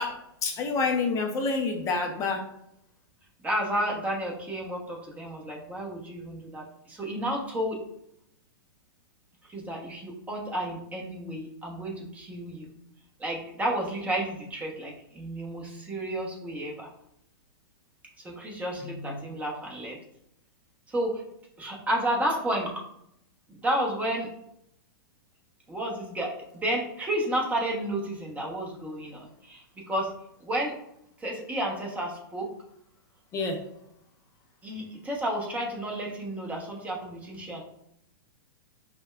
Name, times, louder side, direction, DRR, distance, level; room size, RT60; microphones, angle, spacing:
voice 1, 0.0-2.5 33.3-33.6, left 4 dB, 25° left, 3 dB, 0.5 m, -28 dB
voice 2, 3.4-7.8 9.5-12.7 13.2-16.9 18.2-20.0 20.9-21.2 21.6-22.8 23.5-24.3 25.7-30.1 30.4-30.7 31.2-32.5 34.6-37.6, right 1 dB, 10° right, -1 dB, 0.9 m, -31 dB
5.2 x 2.2 x 2.3 m, 0.76 s
hypercardioid pair, 120°, 12 cm